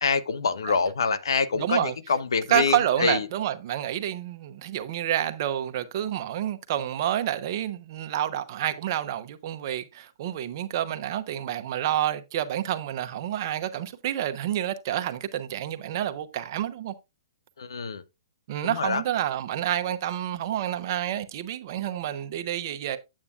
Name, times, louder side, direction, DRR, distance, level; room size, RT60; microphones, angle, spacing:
voice 1, 0.0-3.3 17.6-18.0 18.6-19.0, left 5 dB, 75° left, 0.7 m, -26 dB
voice 2, 1.6-1.9 2.5-16.9 18.5-23.0, right 11 dB, 50° right, 0.9 m, -29 dB
8.6 x 8.3 x 2.4 m
hypercardioid pair, 125°, 2 cm